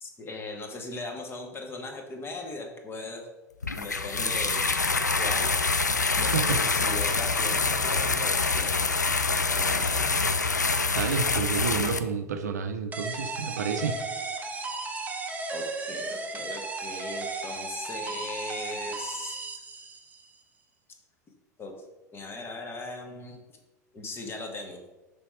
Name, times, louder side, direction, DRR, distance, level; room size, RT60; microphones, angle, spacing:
voice 1, 0.0-3.3 3.7-4.7 5.2-5.5 6.2-8.9 9.3-10.2 15.5-19.4 21.6-21.7 22.1-23.4 23.9-24.8, left 2 dB, 25° left, 3 dB, 1.2 m, -39 dB
sound 1, 3.6-12.0, left 4 dB, 85° left, 0.4 m, -26 dB
voice 2, 6.2-6.6 10.9-14.0, right 6 dB, 70° right, 7 dB, 0.5 m, -30 dB
sound 2, 12.9-20.3, right 3 dB, 15° right, 0.7 m, -35 dB
5.8 x 3.5 x 5.5 m, 1.1 s
figure-of-eight pair, 80°, 9 cm